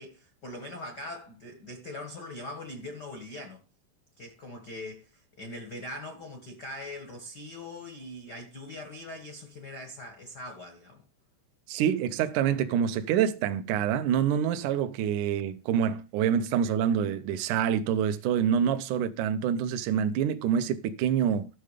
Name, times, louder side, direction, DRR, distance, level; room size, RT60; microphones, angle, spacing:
voice 1, 0.0-3.6 4.2-11.0, left 1 dB, 70° left, 0.9 m, -41 dB
voice 2, 11.7-21.5, right 8 dB, 80° right, 1.8 m, -26 dB
13.0 x 6.6 x 5.0 m
omnidirectional pair, 4.8 m